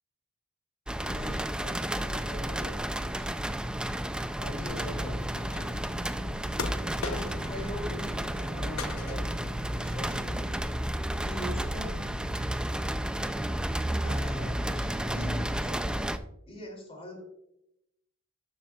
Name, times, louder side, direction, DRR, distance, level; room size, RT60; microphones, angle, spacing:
sound 1, 0.9-16.2, right 1 dB, 5° right, 0.3 m, -32 dB
voice 1, 1.0-3.3 4.4-5.2 7.0-9.3 9.8-10.5 11.2-12.0 14.0-16.1 16.5-17.3, left 1 dB, 30° left, 1 dB, 2.5 m, -42 dB
sound 2, 4.6-10.6, equal, 40° right, 1.8 m, -40 dB
sound 3, 5.4-5.9 6.6-7.6 7.9-8.5 8.8-9.4, left 4 dB, 85° left, 0.8 m, -38 dB
12.5 x 7.2 x 2.3 m, 0.82 s
head